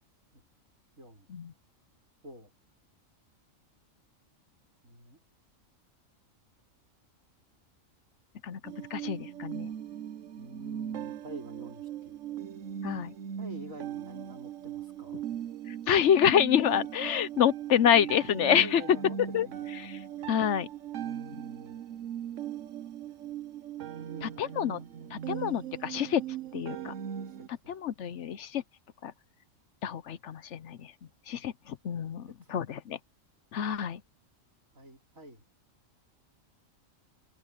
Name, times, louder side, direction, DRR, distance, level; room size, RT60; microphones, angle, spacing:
voice 1, 1.0-1.3 2.2-2.5 4.8-5.2 8.5-8.9 10.4-12.2 13.4-15.2 18.5-20.0 21.0-21.8 23.2-23.3 24.0-25.5 27.2-27.7 32.3-32.6 34.7-35.4, right 2 dB, 85° right, 4.8 m, -48 dB
voice 2, 8.4-9.7 12.8-13.1 15.9-18.8 19.3-19.5 19.8-20.0 20.3-20.7 24.2-24.8 25.1-26.2 26.5-26.9 27.7-28.6 29.0-29.1 29.8-30.9 31.3-33.0 33.5-34.0, left 9 dB, 65° left, 1.0 m, -27 dB
sound 1, 8.6-27.5, right 10 dB, 70° right, 1.1 m, -39 dB
omnidirectional pair, 1.4 m